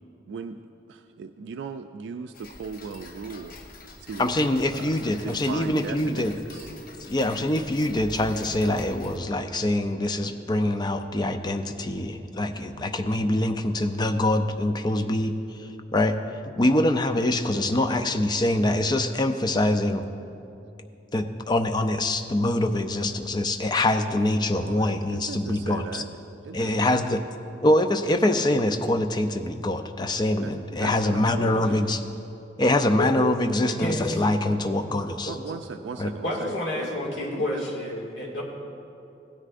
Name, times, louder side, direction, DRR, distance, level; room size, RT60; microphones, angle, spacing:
voice 1, 0.3-0.6 0.9-3.6 4.0-4.3 4.7-6.7 24.5-26.1 26.4-27.0 30.4-31.8 35.2-36.9 37.4-37.7, right 5 dB, 85° right, 7 dB, 0.3 m, -38 dB
Tick-tock, 2.3-9.2, left 2 dB, 55° left, 0.8 m, -45 dB
voice 2, 4.2-6.3 7.1-15.3 15.6-16.1 16.6-20.0 21.1-26.0 26.5-27.2 27.6-32.0 32.6-35.3 36.0-36.1, left 1 dB, 25° left, 7 dB, 0.5 m, -24 dB
voice 3, 33.7-34.2 36.2-38.4, left 1 dB, 85° left, -3 dB, 2.1 m, -29 dB
16.5 x 9.8 x 2.5 m, 2.7 s
head